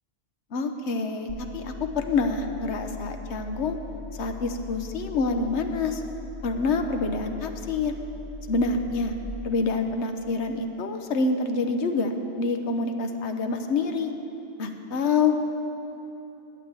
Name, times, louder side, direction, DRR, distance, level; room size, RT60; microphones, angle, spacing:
voice 1, 0.5-3.8 4.2-6.0 6.4-7.9 8.5-9.1 9.4-12.1 12.4-14.1 14.6-15.4, left 4 dB, 80° left, 6 dB, 1.2 m, -27 dB
sound 1, 1.3-9.3, left 3 dB, 20° right, 0.7 m, -40 dB
12.0 x 8.3 x 8.2 m, 3.0 s
omnidirectional pair, 1.1 m